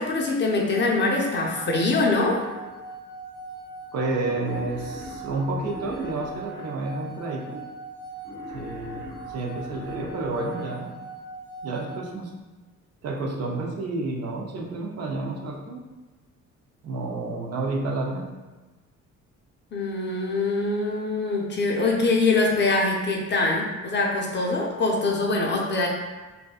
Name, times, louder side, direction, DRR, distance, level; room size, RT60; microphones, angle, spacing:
voice 1, 0.0-2.4 19.7-25.9, left 3 dB, 40° left, -1 dB, 0.5 m, -23 dB
sound 1, 0.7-12.0, right 3 dB, 85° left, 0.5 m, -40 dB
voice 2, 3.9-7.7 8.5-10.9 11.6-12.3 13.0-15.8 16.8-18.3, right 2 dB, 55° right, -1 dB, 0.5 m, -30 dB
Wild animals, 4.2-6.7 8.2-10.7, left 1 dB, 85° right, 1.2 m, -42 dB
2.6 x 2.2 x 2.4 m, 1.2 s
cardioid pair, 90°, 30 cm